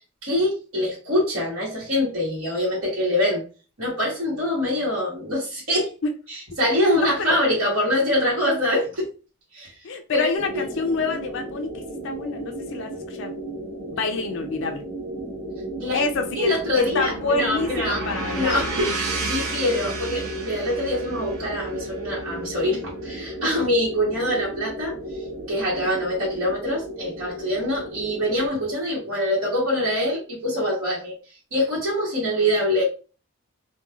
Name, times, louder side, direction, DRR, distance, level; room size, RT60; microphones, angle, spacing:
voice 1, 0.2-3.4 3.8-5.9 6.3-9.1 9.5-9.7 10.1-10.3 10.5-10.6 15.8-16.0 16.3-18.0 18.3-24.9 25.5-31.1 31.5-32.8, left 1 dB, 65° right, 1.1 m, -24 dB
voice 2, 7.0-7.4 9.8-13.3 13.9-14.8 15.9-18.6, left 3 dB, 55° left, 0.3 m, -27 dB
sound 1, 10.4-28.5, right 1 dB, 35° right, 0.9 m, -35 dB
sound 2, 16.3-24.4, right 3 dB, 85° right, 0.6 m, -33 dB
2.9 x 2.2 x 2.3 m
head